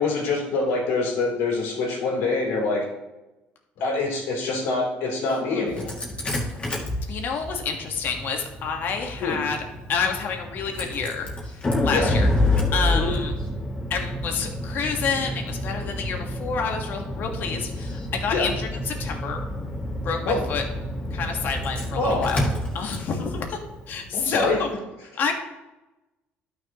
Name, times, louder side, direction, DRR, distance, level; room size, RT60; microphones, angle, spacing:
voice 1, 0.0-2.9 3.8-5.9 9.2-9.4 11.9-12.1 12.9-13.1 18.3-18.5 20.2-20.5 21.9-22.3 24.1-24.6 25.1-25.2, left 3 dB, 80° left, -3 dB, 3.2 m, -25 dB
voice 2, 5.4-5.8 7.1-9.6 9.9-11.3 11.8-12.3 12.7-13.3 13.9-19.4 20.0-20.6 21.1-22.4 22.7-23.6 23.9-24.7 25.2-25.3, left 5 dB, 50° left, 3 dB, 1.5 m, -28 dB
Engine starting, 5.7-24.6, left 1 dB, 30° left, 2.2 m, -29 dB
12.0 x 6.2 x 3.0 m, 1.0 s
cardioid pair, 130°, 4 cm